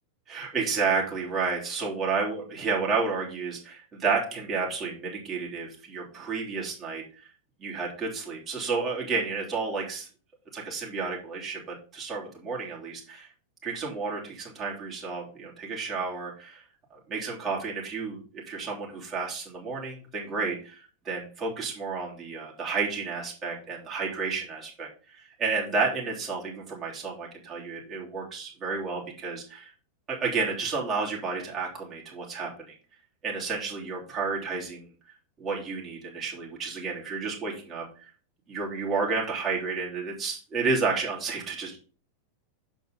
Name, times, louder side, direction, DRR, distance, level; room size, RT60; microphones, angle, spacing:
voice 1, 0.3-7.0 7.6-10.1 10.5-13.3 13.6-16.6 16.9-29.7 30.1-32.7 33.2-34.9 35.4-37.9 38.5-41.8, right 4 dB, 25° right, -3 dB, 3.5 m, -31 dB
7.4 x 5.3 x 5.4 m, 0.38 s
figure-of-eight pair, 90°, 0 cm